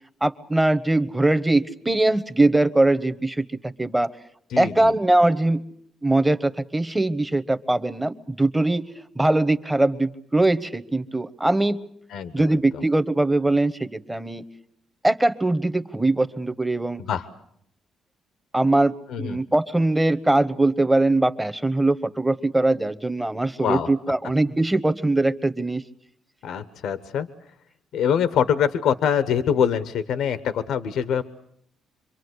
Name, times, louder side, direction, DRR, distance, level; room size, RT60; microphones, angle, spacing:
voice 1, 0.2-4.1 4.6-5.6 6.0-8.9 9.1-11.8 12.3-14.4 15.0-17.0 18.5-25.8, right 2 dB, 10° right, 13 dB, 1.1 m, -21 dB
voice 2, 4.5-4.9 12.1-12.6 17.0-17.3 19.1-19.4 23.6-23.9 26.4-27.3 27.9-31.2, left 8 dB, 80° left, 12 dB, 1.0 m, -24 dB
26.5 x 23.0 x 8.1 m, 0.69 s
cardioid pair, 90°, 0 cm